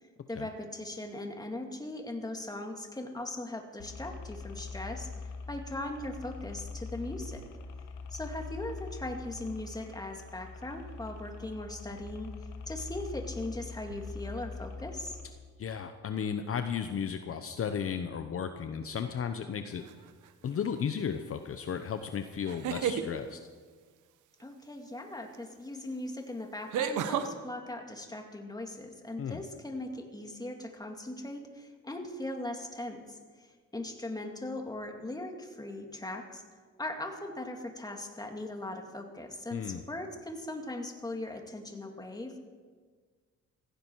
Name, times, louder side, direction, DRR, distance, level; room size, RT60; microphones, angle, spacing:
voice 1, 0.3-5.1 5.5-7.4 8.1-12.3 12.7-15.2 24.4-33.2 33.7-36.4 36.8-42.4, left 1 dB, 15° left, 3 dB, 2.3 m, -39 dB
sound 1, 3.8-15.3, left 4 dB, 90° left, 1.5 m, -43 dB
voice 2, 15.6-19.8 20.4-23.4 29.2-29.4 39.5-39.8, left 7 dB, 50° left, 8 dB, 0.9 m, -34 dB
sound 2, 19.9-20.3 22.4-23.1 25.3-25.4 26.7-27.3, right 8 dB, 85° right, 1.1 m, -31 dB
16.0 x 16.0 x 4.7 m, 1.5 s
cardioid pair, 90°, 30 cm